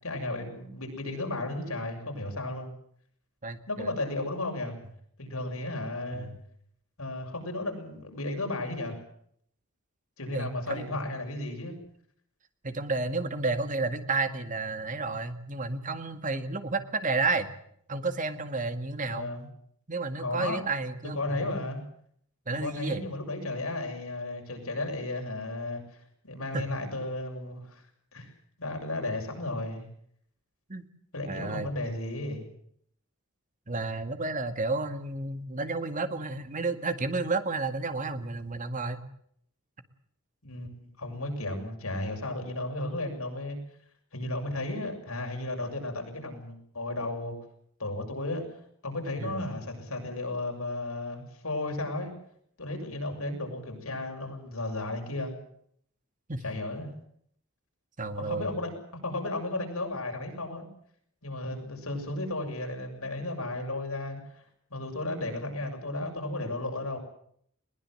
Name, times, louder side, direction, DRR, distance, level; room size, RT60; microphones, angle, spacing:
voice 1, 0.0-2.7 3.7-4.8 5.2-6.3 7.0-9.0 10.2-11.8 19.0-19.5 20.2-20.6 21.2-21.8 22.6-25.8 26.2-27.8 28.1-28.3 28.6-29.8 31.1-32.5 40.4-40.7 41.0-43.6 44.1-47.3 47.8-48.4 48.8-52.1 52.6-55.3 56.4-56.9 58.2-58.7 59.0-60.7 61.2-64.4 64.7-67.0, left 2 dB, 80° left, 2 dB, 7.0 m, -34 dB
voice 2, 3.4-3.9 6.1-6.4 10.3-11.0 12.6-17.5 17.9-19.3 19.9-21.5 22.5-23.0 26.5-26.7 30.7-30.9 31.2-31.7 33.7-39.0 49.2-49.4 56.3-56.4 58.0-58.5, right 3 dB, 35° right, 9 dB, 1.9 m, -31 dB
21.5 x 20.0 x 7.7 m, 0.67 s
head